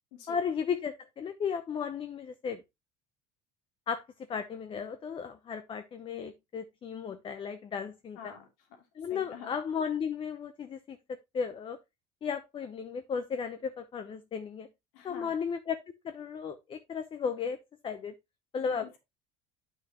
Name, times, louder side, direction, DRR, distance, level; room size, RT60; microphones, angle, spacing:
voice 1, 0.3-2.6 3.9-4.0 4.3-8.2 9.0-11.8 12.2-14.7 15.0-17.6 17.8-18.1 18.5-18.8, left 6 dB, 30° left, 0.8 m, -35 dB
voice 2, 8.1-9.5 14.9-15.3 18.6-19.0, left 7 dB, 85° left, 3.1 m, -47 dB
9.6 x 6.3 x 3.0 m
cardioid pair, 135°, 17 cm